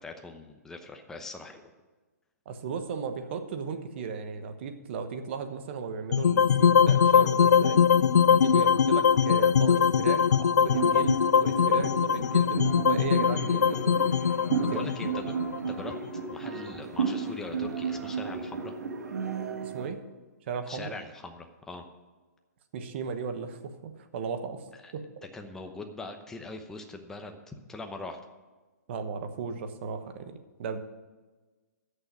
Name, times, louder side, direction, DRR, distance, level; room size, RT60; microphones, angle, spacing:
voice 1, 0.0-1.7 14.6-15.3 15.7-15.9 16.3-18.7 20.7-21.8 24.8-24.9 25.3-28.2, left 3 dB, 5° left, 4 dB, 0.8 m, -41 dB
voice 2, 2.4-7.8 8.3-14.0 14.6-14.9 19.6-20.0 20.5-20.9 22.7-24.6 24.9-25.2 28.9-30.8, right 5 dB, 40° right, 8 dB, 1.2 m, -36 dB
sound 1, 6.1-16.3, left 7 dB, 85° left, 0.4 m, -22 dB
sound 2, 10.7-19.9, right 6 dB, 75° right, 1.8 m, -33 dB
13.0 x 6.7 x 6.1 m, 1.3 s
hypercardioid pair, 155°, 9 cm